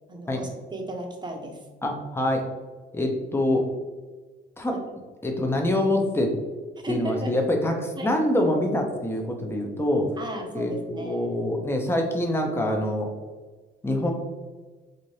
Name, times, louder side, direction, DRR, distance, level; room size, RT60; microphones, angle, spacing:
voice 1, 0.1-1.6 4.7-4.8 6.8-7.3 8.0-8.2 10.2-11.3, right 1 dB, 20° right, 2 dB, 0.8 m, -35 dB
voice 2, 1.8-2.5 2.9-3.7 4.6-4.8 5.2-6.3 6.9-10.1 10.5-13.1 13.8-14.1, left 1 dB, 10° left, 2 dB, 0.7 m, -25 dB
4.1 x 2.6 x 3.2 m, 1.4 s
cardioid pair, 90°, 20 cm